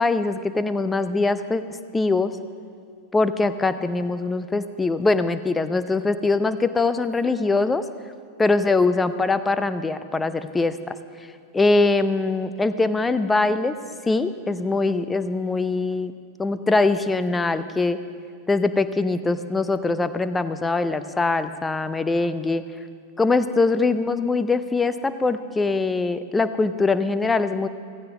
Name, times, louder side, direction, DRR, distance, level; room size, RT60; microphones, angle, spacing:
voice 1, 0.0-1.6 1.9-2.3 3.1-7.8 8.4-11.0 11.5-13.8 14.1-16.1 16.4-18.0 18.5-22.6 23.2-27.7, left 3 dB, 10° left, 12 dB, 0.6 m, -22 dB
15.5 x 15.0 x 3.8 m, 2.3 s
figure-of-eight pair, 90°, 0 cm